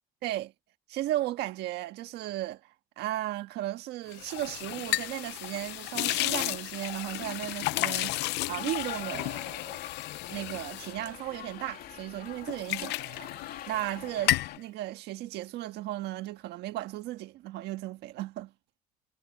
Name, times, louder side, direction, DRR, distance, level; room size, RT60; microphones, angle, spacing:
voice 1, 0.2-0.5 0.9-9.9 10.3-13.3 13.7-18.5, right 15 dB, 85° right, 1.6 m, -35 dB
sound 1, 4.1-11.9 12.3-13.9 14.2-14.6, left 18 dB, 90° left, 0.6 m, -33 dB
sound 2, 8.6-14.6, left 11 dB, 60° left, 2.8 m, -44 dB
cardioid pair, 110°, 17 cm